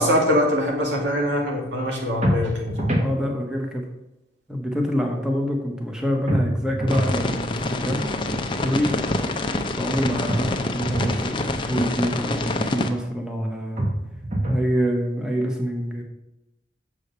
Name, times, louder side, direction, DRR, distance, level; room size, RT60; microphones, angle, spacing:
voice 1, 0.0-3.0, equal, 80° right, -1 dB, 2.1 m, -23 dB
sound 1, 2.2-3.1 6.3-7.2 10.3-11.2 13.8-14.7, right 1 dB, 40° right, 1.4 m, -25 dB
voice 2, 3.0-3.8 4.5-8.1 8.6-9.0 9.7-13.9 14.5-16.0, equal, 5° right, 1 dB, 1.0 m, -26 dB
sound 2, 6.9-12.9, left 2 dB, 30° left, 0.6 m, -26 dB
7.1 x 4.9 x 6.7 m, 0.93 s
head